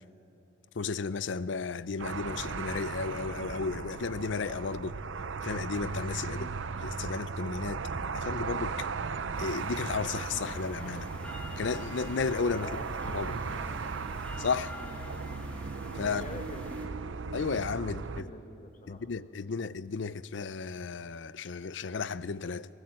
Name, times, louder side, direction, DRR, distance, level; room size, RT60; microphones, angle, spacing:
voice 1, 0.8-5.0 5.4-6.5 6.8-7.8 8.1-8.9 9.4-11.1 11.6-12.7 13.1-13.4 14.4-14.7 16.0-16.2 17.3-18.3 18.9-22.7, left 4 dB, 65° left, 0.5 m, -33 dB
sound 1, 2.0-18.2, right 4 dB, 75° right, 0.6 m, -37 dB
sound 2, 9.3-16.9, left 1 dB, 5° left, 1.4 m, -47 dB
voice 2, 12.6-13.9 14.8-15.0 16.1-17.2 17.8-19.0, left 1 dB, 40° left, 1.7 m, -47 dB
22.5 x 17.5 x 7.6 m
head